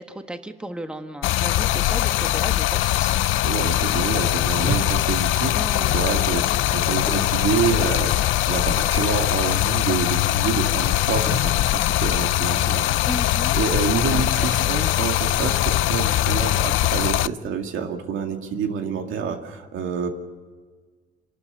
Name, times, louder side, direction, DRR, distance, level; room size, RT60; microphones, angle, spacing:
voice 1, 0.0-3.2 5.5-6.0 13.0-13.6 14.1-14.3 14.6-14.8, right 1 dB, 5° right, 7 dB, 1.4 m, -34 dB
Stream, 1.2-17.3, left 15 dB, 80° left, 0.5 m, -21 dB
voice 2, 3.4-5.5 5.9-12.9 13.5-20.1, right 6 dB, 80° right, 4 dB, 2.2 m, -27 dB
sound 1, 4.6-5.8 6.1-11.6, right 1 dB, 15° left, 3.1 m, -36 dB
27.0 x 12.5 x 8.2 m, 1.5 s
cardioid pair, 90°, 20 cm